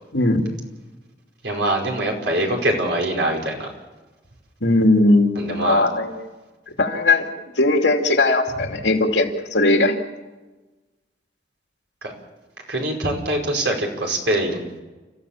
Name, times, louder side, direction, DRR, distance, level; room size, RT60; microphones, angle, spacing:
voice 1, 1.4-3.7 5.4-5.8 12.0-12.1 12.7-14.6, right 1 dB, 90° right, 1 dB, 5.2 m, -23 dB
voice 2, 4.6-6.1 6.8-7.3 7.6-10.0, left 2 dB, 85° left, 3 dB, 2.8 m, -18 dB
30.0 x 15.0 x 7.3 m, 1.2 s
head